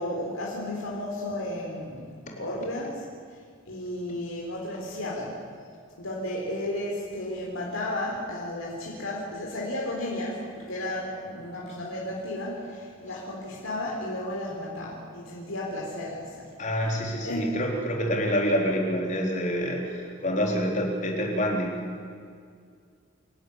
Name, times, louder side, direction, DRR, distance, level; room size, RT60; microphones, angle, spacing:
voice 1, 0.0-2.1 2.4-3.0 3.7-5.4 6.0-16.5 17.2-17.6, left 1 dB, 85° left, -3 dB, 3.9 m, -33 dB
voice 2, 16.6-21.8, equal, 35° left, 0 dB, 4.0 m, -27 dB
28.0 x 12.0 x 10.0 m, 2.2 s
head